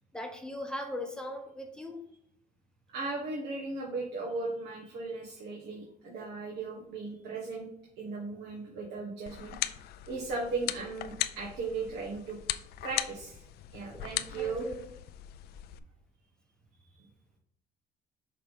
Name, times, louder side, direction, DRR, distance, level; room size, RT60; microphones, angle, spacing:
voice 1, 0.1-2.0 13.9-14.1 14.4-14.8, left 1 dB, 5° left, 3 dB, 0.8 m, -39 dB
voice 2, 2.9-7.7 8.0-9.6 9.8-12.4 12.8-13.4 13.7-14.6 16.9-17.1, right 3 dB, 75° right, -3 dB, 1.4 m, -37 dB
sound 1, 9.3-15.8, left 13 dB, 70° left, 0.4 m, -38 dB
5.8 x 3.4 x 5.3 m, 0.70 s
cardioid pair, 110°, 17 cm